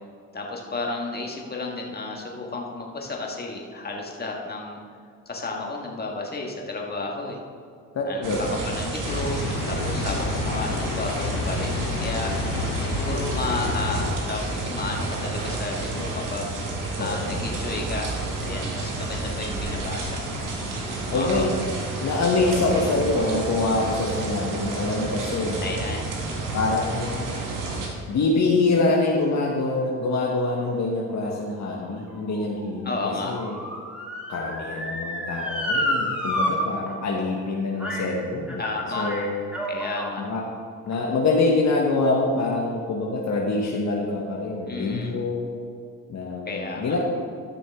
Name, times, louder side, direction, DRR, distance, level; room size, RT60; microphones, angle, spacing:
voice 1, 0.3-4.8 5.2-7.4 8.0-8.3 8.6-12.3 12.8-16.5 17.0-18.1 18.4-20.3 21.1-21.4 25.6-26.0 32.8-33.3 38.6-39.1 39.7-40.2 44.7-45.1 46.4-47.0, left 3 dB, 30° left, 0 dB, 1.8 m, -32 dB
voice 2, 7.9-8.5 17.0-17.4 21.1-21.5 22.0-25.6 26.5-27.3 28.1-33.5 34.3-38.6 39.0-39.4 40.2-40.4 40.9-45.5 46.1-47.0, left 3 dB, 50° left, -2 dB, 1.3 m, -25 dB
sound 1, 8.2-27.9, right 2 dB, 65° right, 1.8 m, -30 dB
sound 2, 9.0-14.1, left 4 dB, 80° left, 1.1 m, -30 dB
Motor vehicle (road) / Siren, 31.3-36.5 36.9-37.0 37.8-38.1 38.5-40.2 40.9-41.0, left 1 dB, 5° right, 2.1 m, -30 dB
13.0 x 6.1 x 3.6 m, 2.2 s
supercardioid pair, 70°, 34 cm